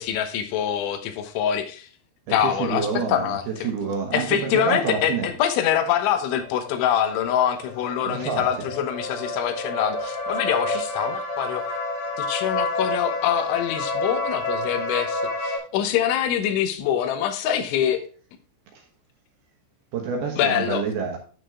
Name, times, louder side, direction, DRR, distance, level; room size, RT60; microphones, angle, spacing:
voice 1, 0.0-1.9 2.3-3.7 4.1-11.8 12.2-18.0 20.4-20.8, left 10 dB, 80° left, 3.4 m, -25 dB
voice 2, 2.4-5.3 8.0-8.5 19.9-21.2, right 6 dB, 70° right, 2.6 m, -27 dB
sound 1, 6.3-15.6, left 2 dB, 50° left, 3.5 m, -29 dB
9.8 x 6.1 x 3.7 m
omnidirectional pair, 5.5 m